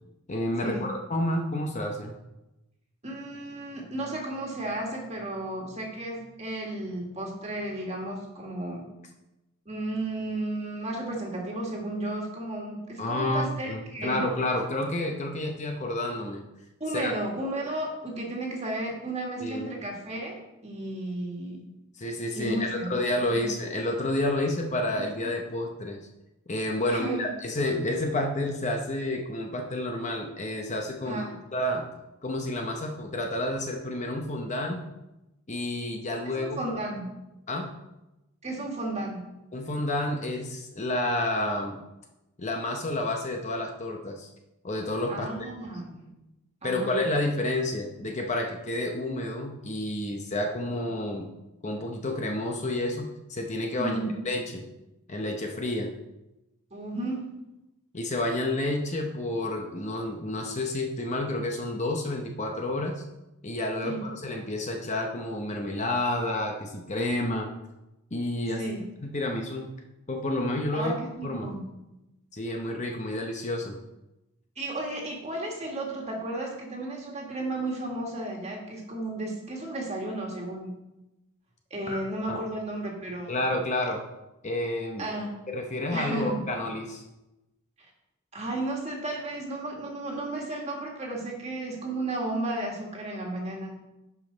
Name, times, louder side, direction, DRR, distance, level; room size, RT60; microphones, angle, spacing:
voice 1, 0.3-2.2 13.0-16.4 16.9-17.1 19.4-19.7 22.0-26.0 26.5-31.9 32.2-34.8 35.5-36.6 37.5-37.7 39.5-41.8 42.4-44.3 44.6-45.3 46.6-51.3 51.6-54.0 54.2-54.6 55.1-55.9 57.9-63.0 63.4-67.5 68.1-68.6 69.0-69.7 70.1-70.9 71.2-71.5 72.3-73.8 81.9-82.0 82.3-82.4 83.3-84.0 84.4-85.1 85.5-87.0, left 1 dB, 30° left, 2 dB, 0.8 m, -30 dB
voice 2, 3.0-8.9 9.7-14.2 16.8-20.4 20.6-21.6 22.3-23.0 23.3-23.5 26.9-27.3 31.0-31.3 36.3-37.2 38.4-39.3 45.1-46.1 46.6-47.0 53.8-54.1 56.7-57.3 63.8-64.0 68.6-68.9 70.7-71.7 74.6-80.8 81.7-83.4 85.0-85.3 85.9-86.5 88.3-93.7, right 1 dB, 30° right, 0 dB, 1.8 m, -33 dB
11.0 x 5.3 x 3.9 m, 0.96 s
head